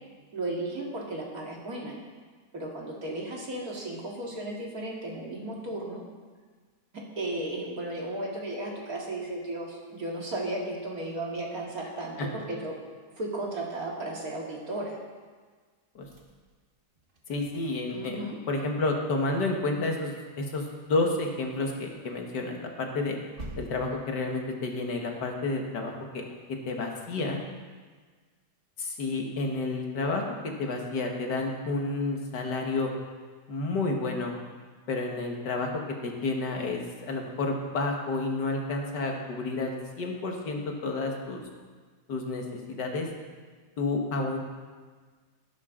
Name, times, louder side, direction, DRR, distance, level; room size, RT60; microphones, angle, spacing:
voice 1, 0.3-2.0 2.5-6.0 6.9-12.8 13.2-15.0 17.9-18.4, right 1 dB, 55° right, -2 dB, 2.6 m, -35 dB
sound 1, 16.0-18.5 18.8-19.1 19.3-19.4 19.7-19.8 20.5-21.9 22.3-24.7, right 1 dB, 35° right, 1.6 m, -48 dB
voice 2, 17.3-18.2 18.5-23.2 23.6-26.2 26.7-27.4 28.8-30.2 30.6-32.9 33.5-34.3 34.9-41.4 42.1-43.1 43.8-44.4, left 2 dB, 80° left, 2 dB, 2.1 m, -30 dB
15.5 x 11.5 x 3.8 m, 1.5 s
omnidirectional pair, 1.8 m